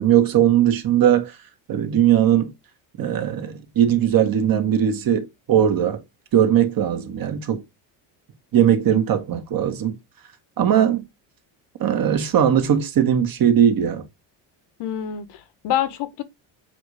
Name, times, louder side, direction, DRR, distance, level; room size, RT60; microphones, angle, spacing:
voice 1, 0.0-1.3 1.7-2.5 3.0-6.0 6.3-7.6 8.5-10.0 10.6-11.0 11.8-14.1, right 10 dB, 50° right, 1.7 m, -19 dB
voice 2, 14.8-16.2, left 11 dB, 65° left, 1.2 m, -26 dB
7.1 x 2.7 x 4.9 m
cardioid pair, 100°, 44 cm